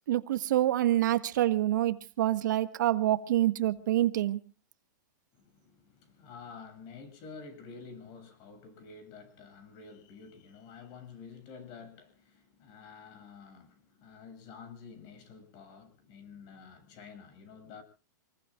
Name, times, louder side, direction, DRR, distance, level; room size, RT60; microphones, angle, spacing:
voice 1, 0.1-4.4, right 13 dB, 70° right, 1.6 m, -27 dB
voice 2, 5.3-17.8, left 5 dB, 40° left, 7.7 m, -49 dB
28.0 x 21.0 x 2.4 m
hypercardioid pair, 140°, 10 cm